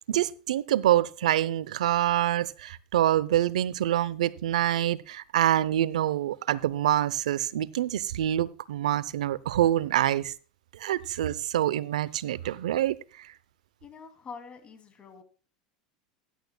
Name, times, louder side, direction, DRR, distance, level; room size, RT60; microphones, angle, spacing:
voice 1, 0.1-10.3 10.7-13.3, right 12 dB, 80° right, 0.6 m, -26 dB
voice 2, 13.8-15.2, left 5 dB, 30° left, 2.7 m, -45 dB
15.5 x 11.0 x 2.3 m
hypercardioid pair, 95°, 4 cm